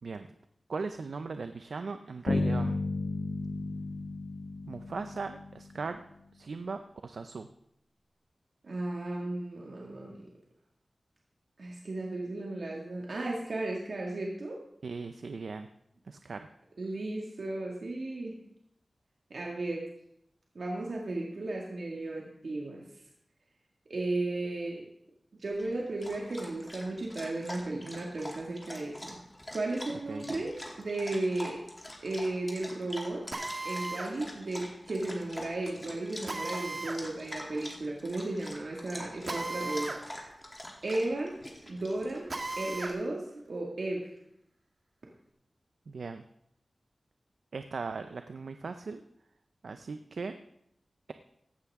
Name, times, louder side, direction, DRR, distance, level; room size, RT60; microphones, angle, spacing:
voice 1, 0.7-2.8 4.7-6.0 6.3-7.5 14.8-15.7 16.1-16.5 30.1-30.4 45.9-46.2 47.5-49.0 49.6-50.4, right 4 dB, 85° right, 8 dB, 0.5 m, -38 dB
Bass guitar, 2.3-6.1, left 2 dB, 75° left, 1.3 m, -33 dB
voice 2, 8.6-10.3 11.6-14.6 16.8-18.4 19.3-19.9 20.6-22.8 23.9-24.9 25.3-29.2 29.5-31.6 32.0-33.3 33.6-39.9 40.8-41.4 41.6-42.3 42.6-44.1, right 2 dB, 70° right, -2 dB, 2.0 m, -34 dB
Dog, 25.5-42.9, left 1 dB, 20° left, 2.8 m, -45 dB
Drill, 33.3-34.1 36.3-37.0 39.3-40.0 40.4-40.5 42.3-43.0, right 2 dB, 50° right, 1.6 m, -36 dB
16.0 x 12.0 x 3.6 m, 0.76 s
wide cardioid pair, 75°, 0 cm